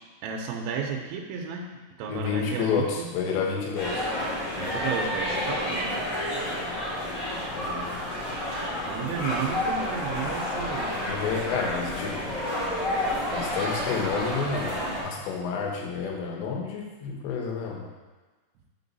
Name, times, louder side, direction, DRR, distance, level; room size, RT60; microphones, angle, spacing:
voice 1, 0.2-1.7 2.0-3.1 4.5-6.0 8.9-10.9 16.2-16.3, right 6 dB, 80° right, 1 dB, 2.9 m, -33 dB
voice 2, 2.1-4.1 7.5-8.1 10.9-12.3 13.3-17.9, left 5 dB, 75° left, 0 dB, 3.2 m, -30 dB
sound 1, 3.7-15.0, left 1 dB, 35° left, 2.1 m, -30 dB
7.0 x 6.1 x 4.0 m, 1.3 s
omnidirectional pair, 5.3 m